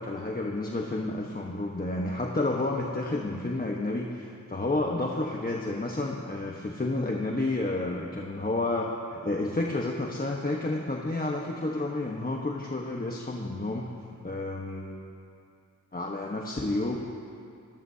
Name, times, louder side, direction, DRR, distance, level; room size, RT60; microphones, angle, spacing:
voice 1, 0.0-13.9 14.2-15.0 15.9-17.0, left 2 dB, 30° left, -1 dB, 1.2 m, -30 dB
27.0 x 14.5 x 2.8 m, 2.4 s
wide cardioid pair, 80°, 32 cm